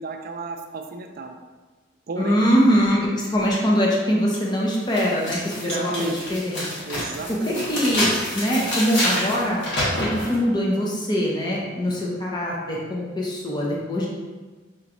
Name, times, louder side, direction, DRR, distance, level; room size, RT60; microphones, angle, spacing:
voice 1, 0.0-1.4 2.1-2.6 3.4-3.5 5.6-6.2 6.9-7.7, right 3 dB, 50° right, 5 dB, 0.4 m, -33 dB
voice 2, 2.2-6.6 7.7-9.6 10.0-14.1, equal, 20° left, -3 dB, 0.7 m, -23 dB
sound 1, 4.3-4.4 4.9-10.4, equal, 70° left, 1.4 m, -27 dB
5.7 x 3.1 x 2.5 m, 1.3 s
head